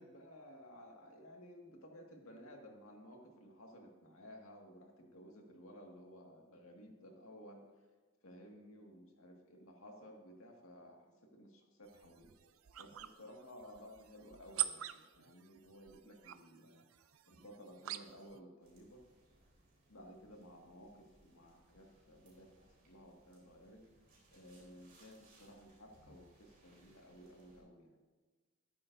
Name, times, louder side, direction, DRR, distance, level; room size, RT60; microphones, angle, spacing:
voice 1, 0.0-7.6 8.2-12.3 12.8-16.9 17.3-19.0 19.9-23.9 24.3-28.0, equal, 75° left, 1 dB, 2.1 m, -56 dB
sound 1, 11.9-18.4, right 13 dB, 75° right, 0.5 m, -45 dB
sound 2, 18.6-27.6, right 1 dB, 40° right, 3.7 m, -68 dB
13.5 x 11.5 x 2.7 m, 1.3 s
head